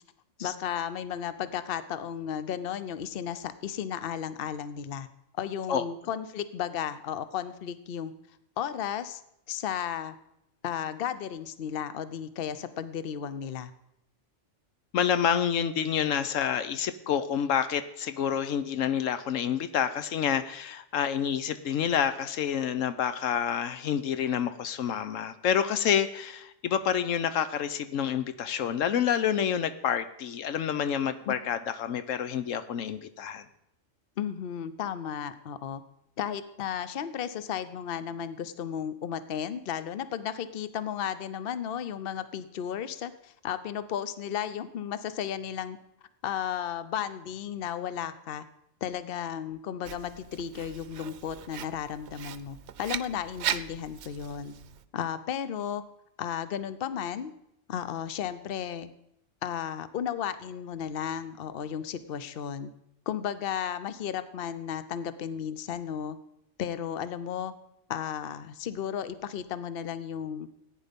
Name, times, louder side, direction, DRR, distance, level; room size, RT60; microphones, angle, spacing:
voice 1, 0.4-5.1 5.4-8.1 8.6-9.2 9.5-10.1 10.6-13.7 31.3-31.4 34.2-35.8 36.2-45.8 46.2-48.4 48.8-54.5 54.9-55.8 56.2-57.3 57.7-58.9 59.4-62.7 63.1-66.2 66.6-67.5 67.9-70.5, left 9 dB, 55° left, 13 dB, 0.9 m, -34 dB
voice 2, 14.9-33.5, left 8 dB, 90° left, 12 dB, 1.1 m, -28 dB
Writing, 49.8-54.8, right 9 dB, 65° right, 0.8 m, -38 dB
15.0 x 9.4 x 5.2 m, 0.80 s
omnidirectional pair, 1.3 m